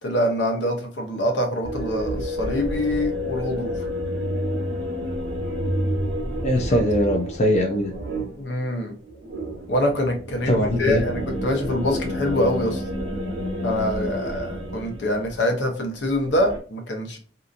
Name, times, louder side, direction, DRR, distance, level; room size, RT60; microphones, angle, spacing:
voice 1, 0.0-3.8 6.7-6.8 8.3-8.9 9.7-12.8 13.6-17.2, left 1 dB, 75° left, 3 dB, 0.8 m, -25 dB
sound 1, 1.6-15.5 15.9-16.6, equal, 80° right, 0.8 m, -30 dB
voice 2, 6.4-7.9 10.5-11.0, equal, 40° left, 0 dB, 0.5 m, -21 dB
2.8 x 2.5 x 2.4 m, 0.39 s
head